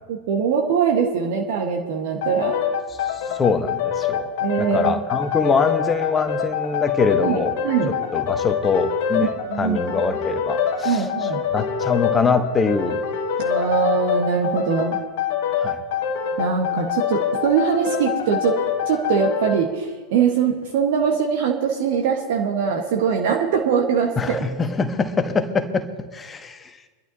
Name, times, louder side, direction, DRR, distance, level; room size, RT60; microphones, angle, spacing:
voice 1, 0.1-2.6 4.4-5.0 7.2-7.9 9.5-10.0 10.8-11.4 13.4-15.0 16.4-18.5 18.9-24.4, right 6 dB, 50° right, 2 dB, 1.4 m, -22 dB
sound 1, 2.2-19.6, left 7 dB, 50° left, 1.3 m, -25 dB
voice 2, 2.9-4.3 4.6-7.5 8.1-9.3 9.6-13.0 15.6-15.8 24.2-25.9 26.1-26.8, left 5 dB, 15° left, 8 dB, 1.2 m, -23 dB
24.5 x 12.0 x 2.9 m, 1.4 s
figure-of-eight pair, 90°, 0 cm